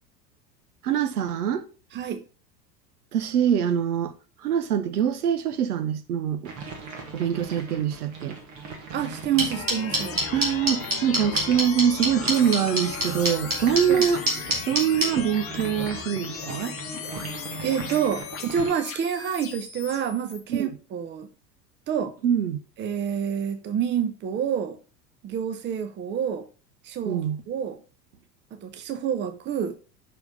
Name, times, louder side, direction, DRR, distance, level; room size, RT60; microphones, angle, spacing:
voice 1, 0.8-1.7 3.1-4.1 4.4-6.5 7.1-8.4 10.3-14.2 14.7-16.8 20.5-20.7 22.2-22.6 27.0-27.4, right 8 dB, 65° right, 0.9 m, -24 dB
voice 2, 1.9-2.2 8.9-10.2 13.9-14.0 17.6-21.3 21.9-22.1 22.8-24.8 25.2-26.5 26.8-27.8 28.5-29.7, right 8 dB, 20° right, 0.8 m, -28 dB
sound 1, 6.4-18.7, right 4 dB, 50° right, 1.9 m, -39 dB
sound 2, 9.4-15.1, right 1 dB, 85° right, 2.3 m, -23 dB
sound 3, 9.5-20.4, left 6 dB, 25° left, 1.0 m, -37 dB
5.6 x 4.6 x 5.2 m
figure-of-eight pair, 80°, 49 cm